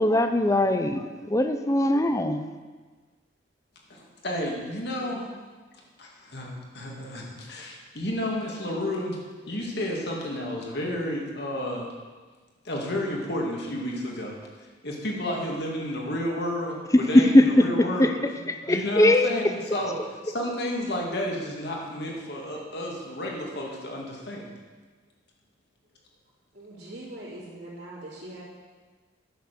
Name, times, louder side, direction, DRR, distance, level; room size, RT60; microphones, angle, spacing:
voice 1, 0.0-2.5 16.9-17.7 18.0-18.1 18.5-19.3, left 1 dB, 15° left, 8 dB, 0.5 m, -20 dB
voice 2, 3.9-5.3 6.0-9.2 9.5-11.9 12.6-14.4 14.8-18.1 18.7-19.9 20.2-24.5, left 1 dB, 60° left, -1 dB, 2.1 m, -31 dB
voice 3, 26.5-28.4, right 1 dB, 60° right, -10 dB, 2.8 m, -42 dB
10.0 x 6.9 x 6.8 m, 1.4 s
head